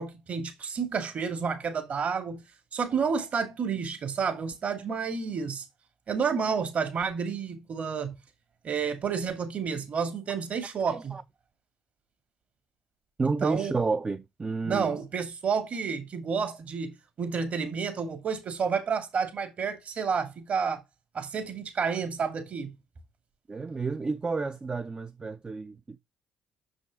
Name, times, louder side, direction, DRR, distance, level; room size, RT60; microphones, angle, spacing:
voice 1, 0.0-2.4 2.7-5.7 6.1-8.1 8.6-11.2 13.4-13.8 14.6-20.8 21.1-22.7, right 6 dB, 50° right, 2.3 m, -30 dB
voice 2, 10.9-11.2 13.2-14.9 23.5-26.0, right 4 dB, 30° right, 0.6 m, -30 dB
6.7 x 5.3 x 3.6 m
hypercardioid pair, 50°, 3 cm